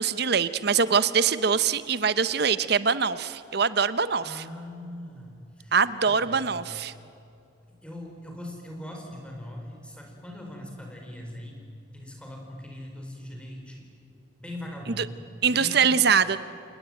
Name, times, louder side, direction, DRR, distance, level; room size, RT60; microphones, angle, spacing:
voice 1, 0.0-4.4 5.7-6.9 15.0-15.1 15.4-16.4, right 6 dB, 55° right, 14 dB, 0.8 m, -23 dB
voice 2, 4.2-5.7 6.0-6.5 7.8-11.6 11.9-13.9 14.4-16.0, left 1 dB, 5° left, 1 dB, 4.7 m, -41 dB
28.0 x 19.5 x 9.1 m, 2.6 s
head